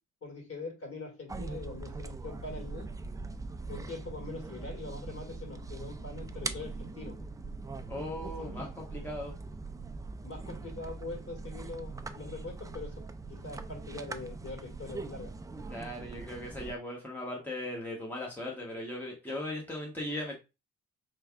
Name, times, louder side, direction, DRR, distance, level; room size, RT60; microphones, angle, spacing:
voice 1, 0.2-2.9 3.7-7.1 8.4-8.7 10.2-13.0 13.3-15.3, left 3 dB, 50° left, 2.2 m, -43 dB
sound 1, 1.3-16.7, right 3 dB, 10° right, 0.3 m, -41 dB
voice 2, 7.9-9.3 15.7-20.4, left 1 dB, 5° left, 1.1 m, -38 dB
4.4 x 3.3 x 2.4 m
cardioid pair, 90°, 30 cm